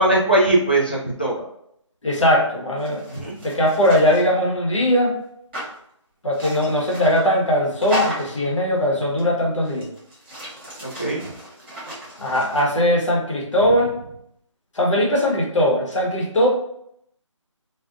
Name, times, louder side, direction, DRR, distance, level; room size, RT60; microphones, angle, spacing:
voice 1, 0.0-1.4 3.1-3.4 10.8-11.2, right 1 dB, 20° left, -5 dB, 0.3 m, -20 dB
voice 2, 2.0-3.0 3.4-5.2 6.2-9.9 12.2-13.9 14.7-16.5, equal, 70° left, -1 dB, 0.9 m, -20 dB
sound 1, 2.8-4.3 5.5-5.7 6.3-7.3 7.8-8.4 9.2-9.3 9.6-12.6, left 1 dB, 20° right, 0.9 m, -33 dB
2.4 x 2.1 x 2.5 m, 0.73 s
figure-of-eight pair, 165°, 17 cm